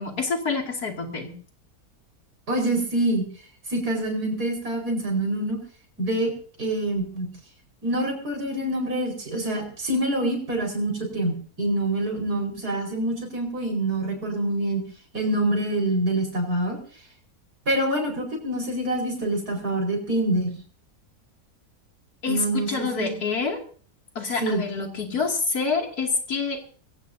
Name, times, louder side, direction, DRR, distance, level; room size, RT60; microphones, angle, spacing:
voice 1, 0.0-1.3 22.2-23.6 24.1-26.6, left 4 dB, 85° left, 2 dB, 3.0 m, -27 dB
voice 2, 2.5-3.2 3.7-5.6 6.0-6.3 6.6-7.3 7.8-14.8 15.1-16.8 17.7-20.6 22.3-23.1 24.4-24.6, right 1 dB, 85° right, 1 dB, 5.3 m, -26 dB
22.0 x 16.5 x 2.7 m, 0.42 s
omnidirectional pair, 1.6 m